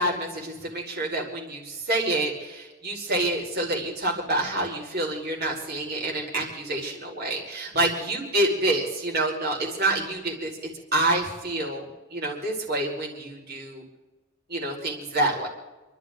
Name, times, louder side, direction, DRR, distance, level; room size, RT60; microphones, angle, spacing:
voice 1, 0.0-10.5 10.9-11.8 12.1-13.8 14.5-15.5, right 1 dB, 55° right, -1 dB, 5.0 m, -27 dB
29.0 x 12.5 x 3.9 m, 1.1 s
head